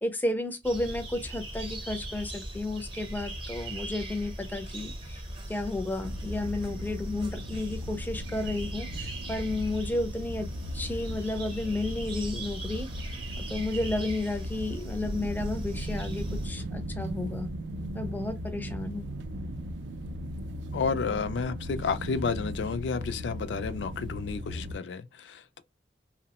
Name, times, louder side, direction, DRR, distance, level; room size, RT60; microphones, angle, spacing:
voice 1, 0.0-5.2 5.5-10.5 10.7-17.5 17.9-19.1, left 2 dB, 10° left, 0.4 m, -32 dB
sound 1, 0.6-16.5, right 1 dB, 30° right, 0.6 m, -39 dB
sound 2, 6.0-24.8, equal, 85° right, 0.4 m, -38 dB
voice 2, 20.7-25.6, left 5 dB, 80° left, 0.4 m, -31 dB
2.9 x 2.0 x 2.8 m
head